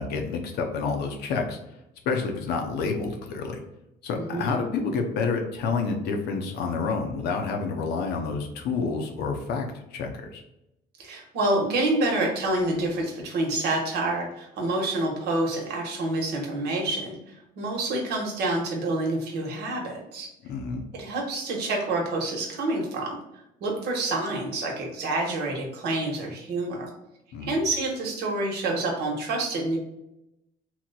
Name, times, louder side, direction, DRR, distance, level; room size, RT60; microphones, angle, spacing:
voice 1, 0.0-1.6 2.1-3.6 4.0-9.7 9.9-10.4 20.4-20.8 27.3-27.5, left 4 dB, 75° left, 3 dB, 0.7 m, -28 dB
voice 2, 4.2-4.5 11.0-17.2 17.6-20.3 20.9-23.2 23.6-26.9 27.4-29.8, right 2 dB, 75° right, 1 dB, 1.0 m, -27 dB
3.0 x 2.1 x 3.9 m, 0.87 s
cardioid pair, 110°, 17 cm